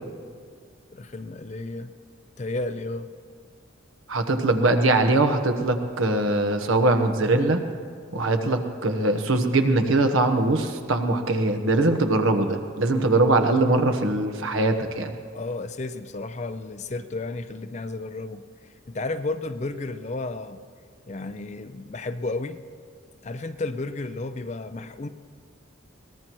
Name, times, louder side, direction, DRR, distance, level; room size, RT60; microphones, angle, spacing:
voice 1, 0.9-1.9 2.4-3.1 15.3-18.5 18.9-20.6 21.1-22.6 23.2-25.1, left 2 dB, 35° left, 11 dB, 0.5 m, -32 dB
voice 2, 4.1-7.6 8.1-15.1, right 2 dB, 80° right, 6 dB, 1.1 m, -22 dB
22.5 x 18.5 x 3.1 m, 2.1 s
head